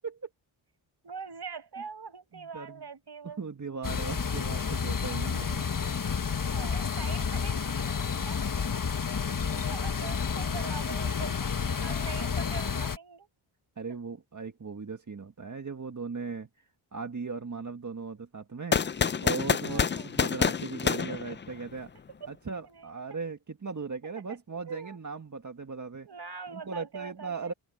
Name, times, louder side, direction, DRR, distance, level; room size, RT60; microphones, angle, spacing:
voice 1, 1.0-3.4 6.5-8.4 9.4-11.5 11.8-13.3 19.7-20.1 22.6-23.0 24.3-24.4 24.7-25.0 26.1-27.5, right 5 dB, 50° right, 5.6 m, -43 dB
voice 2, 3.2-5.6 13.8-16.5 16.9-18.8 19.2-21.9 22.3-26.1 26.5-27.5, right 4 dB, 35° right, 1.9 m, -38 dB
sound 1, 3.8-13.0, left 6 dB, 40° left, 1.4 m, -30 dB
sound 2, 18.7-21.9, left 6 dB, 25° left, 0.4 m, -28 dB
open air
cardioid pair, 80°, 49 cm